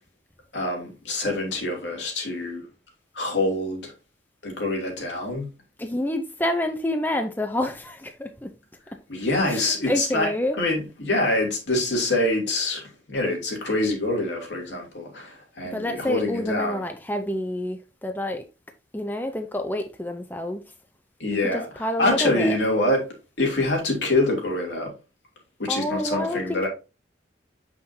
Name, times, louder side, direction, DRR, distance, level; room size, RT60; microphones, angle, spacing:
voice 1, 0.5-2.6 3.1-3.9 4.4-5.5 9.1-12.8 13.1-16.8 21.2-23.1 23.4-24.9 25.6-26.7, left 2 dB, 80° left, 2.9 m, -25 dB
voice 2, 5.8-8.5 9.5-10.6 15.7-18.4 18.9-20.6 21.4-22.6 25.7-26.4, left 1 dB, 10° left, 0.5 m, -28 dB
6.8 x 5.8 x 2.8 m
head